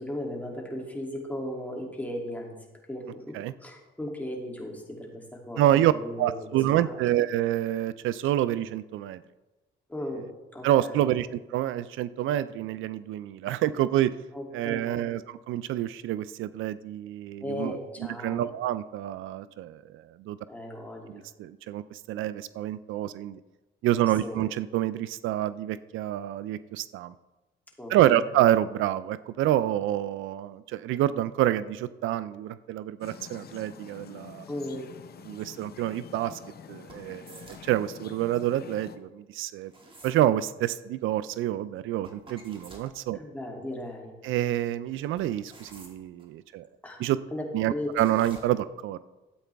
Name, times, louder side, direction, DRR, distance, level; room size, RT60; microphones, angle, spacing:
voice 1, 0.0-2.6 2.9-6.5 6.7-6.9 9.9-10.3 10.5-11.1 14.3-15.0 17.4-18.5 20.5-21.2 24.2-24.4 27.8-28.2 34.5-34.9 43.1-44.1 46.8-47.0 47.3-47.9, left 1 dB, 10° left, -1 dB, 2.6 m, -36 dB
voice 2, 5.6-5.9 6.2-9.2 10.6-14.1 14.5-17.7 18.2-20.4 21.1-23.4 23.8-27.1 27.9-34.5 35.3-36.4 36.7-39.7 40.0-43.2 44.2-46.6 47.0-47.2 47.5-49.0, right 13 dB, 85° right, 15 dB, 0.4 m, -27 dB
sound 1, 33.0-39.0, left 7 dB, 50° left, 0.8 m, -47 dB
sound 2, 36.9-37.8 39.6-40.2 42.0-42.9 45.2-46.3 47.9-48.4, right 2 dB, 25° right, 2.1 m, -50 dB
13.0 x 8.3 x 3.4 m, 1.1 s
cardioid pair, 90°, 20 cm